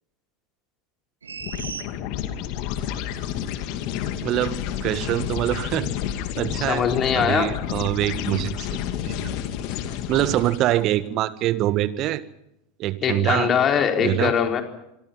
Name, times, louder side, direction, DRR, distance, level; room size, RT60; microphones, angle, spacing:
sound 1, 1.2-2.7 3.1-3.2, right 5 dB, 80° right, 2.1 m, -36 dB
sound 2, 1.4-10.9, left 10 dB, 55° left, 2.6 m, -30 dB
voice 1, 4.2-5.9 6.4-6.9 7.1-8.7 9.0-9.3 10.1-12.2 12.8-13.5 14.0-14.3, right 14 dB, 45° right, 15 dB, 1.6 m, -24 dB
voice 2, 6.6-7.6 13.0-14.6, left 8 dB, 35° left, 4 dB, 4.3 m, -22 dB
26.0 x 23.5 x 5.7 m, 0.83 s
figure-of-eight pair, 80°, 0 cm